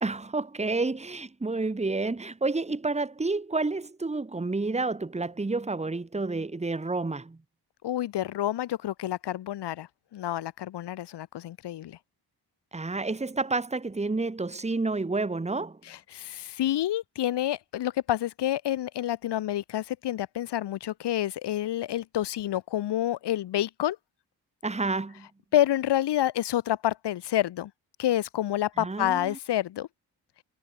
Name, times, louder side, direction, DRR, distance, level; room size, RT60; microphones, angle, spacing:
voice 1, 0.0-7.4 12.7-15.8 24.6-25.3 28.8-29.4, right 3 dB, 15° right, 2.6 m, -30 dB
voice 2, 7.8-12.0 15.9-24.0 25.5-27.7 28.0-29.9, left 13 dB, 85° left, 2.9 m, -28 dB
cardioid pair, 110°, 40 cm